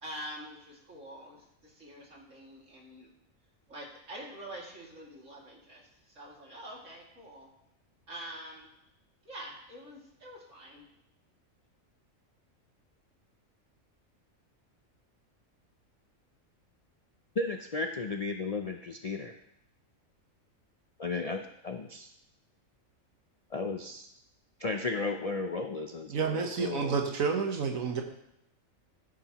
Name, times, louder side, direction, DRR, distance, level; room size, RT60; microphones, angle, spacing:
voice 1, 0.0-3.1 3.7-5.8 6.2-7.5 8.1-8.7 9.3-10.8, right 1 dB, 65° right, -3 dB, 2.9 m, -45 dB
voice 2, 17.4-19.3 21.0-22.1 23.5-24.1 24.6-27.0, left 3 dB, 50° left, 5 dB, 0.4 m, -34 dB
voice 3, 26.1-28.0, right 5 dB, 80° right, 3 dB, 1.5 m, -30 dB
14.5 x 9.1 x 3.0 m, 0.81 s
omnidirectional pair, 1.4 m